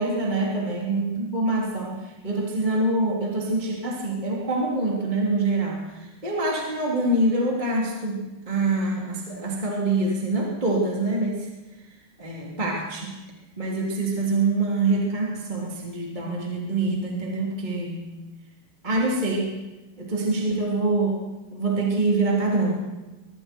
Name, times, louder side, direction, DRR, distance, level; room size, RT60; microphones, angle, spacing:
voice 1, 0.0-11.5 12.2-13.1 13.6-18.0 18.8-19.6 20.0-21.2 21.5-22.8, right 2 dB, 10° right, -3 dB, 3.0 m, -25 dB
23.5 x 23.5 x 4.6 m, 1.1 s
omnidirectional pair, 4.5 m